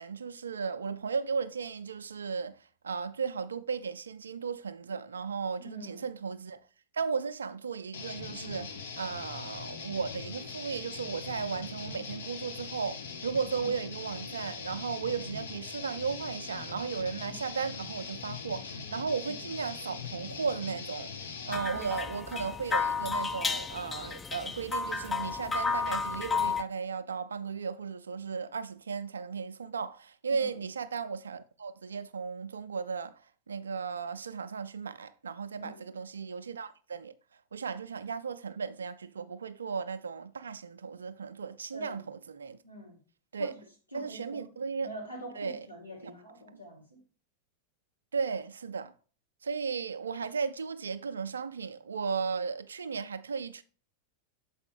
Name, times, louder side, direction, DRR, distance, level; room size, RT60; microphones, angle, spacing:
voice 1, 0.0-2.6 2.8-6.6 6.9-33.2 33.5-37.1 37.5-42.6 43.3-43.5 43.9-44.9 45.4-45.7 46.0-46.1 46.5-46.6 48.1-48.9 49.4-53.6, right 5 dB, 70° right, 0.4 m, -35 dB
voice 2, 5.6-6.0 13.6-13.7 17.3-17.4 19.3-19.4 21.7-21.9 30.3-30.6 35.5-35.8 41.7-42.0 42.6-43.0 43.4-43.5 43.9-44.5 44.8-47.0, equal, 85° left, 1.6 m, -45 dB
sound 1, 7.9-21.6, left 5 dB, 65° left, 0.9 m, -41 dB
sound 2, 21.5-26.6, left 5 dB, 15° left, 0.4 m, -32 dB
6.9 x 4.8 x 3.4 m
figure-of-eight pair, 90°, 0 cm